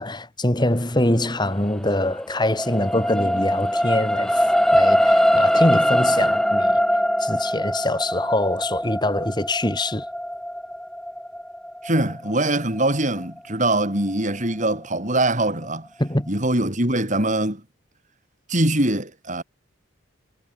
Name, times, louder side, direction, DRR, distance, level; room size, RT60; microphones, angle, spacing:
voice 1, 0.0-6.8 7.2-10.0 16.0-16.3, left 1 dB, 20° left, 2.8 m, -24 dB
sound 1, 1.6-14.1 14.6-14.7, equal, 5° left, 4.0 m, -22 dB
voice 2, 11.8-15.9 16.3-17.6 18.5-19.4, right 1 dB, 40° right, 6.9 m, -22 dB
head